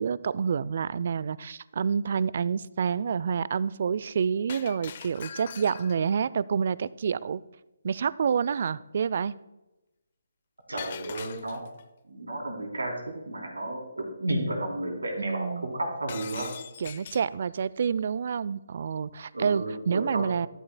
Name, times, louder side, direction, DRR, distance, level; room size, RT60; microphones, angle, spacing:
voice 1, 0.0-7.4 7.8-9.3 15.2-15.7 16.8-20.5, right 6 dB, 50° right, 19 dB, 0.3 m, -28 dB
Shatter, 4.5-6.2 10.8-11.8 16.1-17.3, left 8 dB, 45° left, 0.5 m, -42 dB
voice 2, 10.7-11.7 12.1-16.5 19.3-20.3, right 1 dB, 85° right, 1 dB, 3.2 m, -32 dB
12.5 x 11.5 x 2.2 m, 1.0 s
figure-of-eight pair, 150°, 0 cm